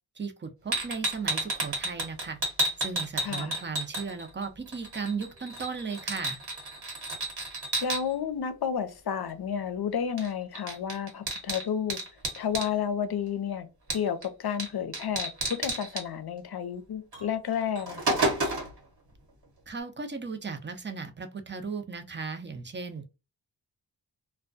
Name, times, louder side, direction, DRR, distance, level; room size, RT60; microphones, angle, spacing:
voice 1, 0.2-2.4 2.8-6.4 19.7-23.0, right 5 dB, 25° right, 0.6 m, -36 dB
sound 1, 0.7-4.5 4.7-8.0 10.2-10.3 10.6-12.7 13.9-14.3 14.6-14.7 14.9-16.0 17.1-17.2 17.6-18.8, right 2 dB, 65° right, 1.2 m, -31 dB
voice 2, 3.2-3.6 7.8-12.0 12.4-13.7 13.9-15.3 15.6-18.2, left 7 dB, 60° left, 0.6 m, -31 dB
2.3 x 2.2 x 2.5 m
cardioid pair, 55°, 44 cm